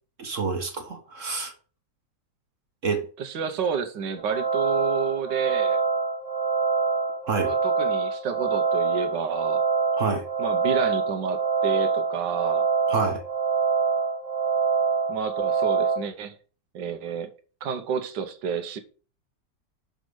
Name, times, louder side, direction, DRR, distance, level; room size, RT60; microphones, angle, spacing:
voice 1, 0.2-1.5 2.8-3.1 7.2-7.5 10.0-10.2 12.9-13.2, right 4 dB, 50° right, 1.3 m, -28 dB
voice 2, 3.2-5.8 7.4-9.6 10.4-12.7 15.1-16.4 16.7-17.3 17.6-18.8, right 6 dB, 85° right, 1.6 m, -30 dB
sound 1, 4.2-16.0, right 5 dB, 30° right, 0.8 m, -25 dB
6.2 x 5.3 x 6.3 m
omnidirectional pair, 1.9 m